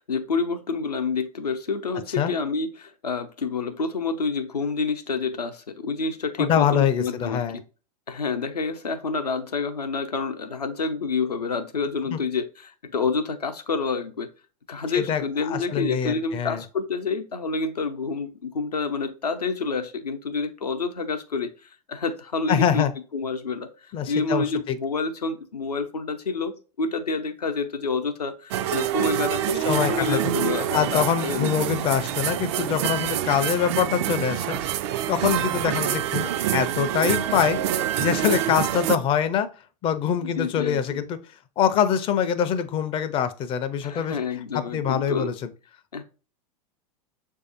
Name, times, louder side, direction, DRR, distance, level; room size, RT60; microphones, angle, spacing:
voice 1, 0.0-7.6 8.1-14.3 14.7-22.8 23.1-31.5 38.5-38.6 40.2-41.1 43.8-45.3 45.9-46.0, left 4 dB, 85° left, 0.6 m, -28 dB
voice 2, 6.4-7.6 12.1-12.2 14.9-16.6 22.5-22.9 23.9-24.8 29.7-30.3 30.7-34.6 35.1-37.6 38.0-39.5 39.8-41.2 41.6-44.2 44.5-45.5, left 8 dB, 25° left, 0.4 m, -24 dB
sound 1, 28.5-39.0, right 11 dB, 45° right, 0.4 m, -26 dB
6.3 x 2.7 x 2.4 m
figure-of-eight pair, 95°, 20 cm